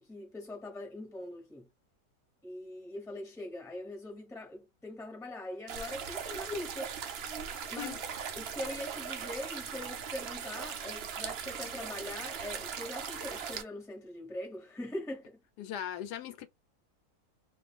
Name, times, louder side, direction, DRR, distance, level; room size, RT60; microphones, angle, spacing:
voice 1, 0.0-1.7 2.4-6.9 7.7-8.0 8.3-15.4, left 1 dB, ahead, 0.9 m, -42 dB
sound 1, 5.7-13.6, right 7 dB, 85° right, 0.5 m, -39 dB
voice 2, 15.6-16.5, left 10 dB, 80° left, 1.2 m, -39 dB
2.5 x 2.5 x 3.4 m
omnidirectional pair, 1.8 m